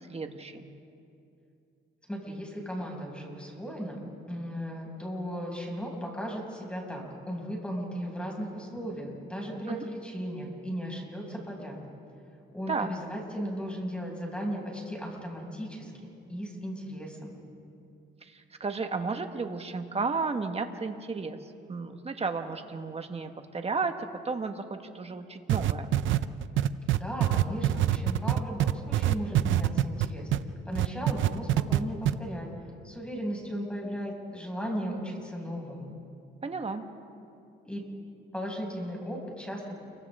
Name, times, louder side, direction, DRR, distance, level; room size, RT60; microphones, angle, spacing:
voice 1, 0.1-0.7 9.7-9.8 12.7-12.9 18.2-25.9 36.4-36.8, right 4 dB, 30° right, 6 dB, 1.6 m, -33 dB
voice 2, 2.1-11.8 12.5-17.3 26.9-30.3 30.6-32.5 32.8-35.9 37.6-37.8 38.3-39.7, equal, 5° left, -1 dB, 6.1 m, -36 dB
sound 1, 25.5-30.4 30.8-31.8 32.1-32.2, right 13 dB, 75° right, 0.6 m, -24 dB
29.5 x 24.0 x 3.7 m, 2.6 s
cardioid pair, 90°, 20 cm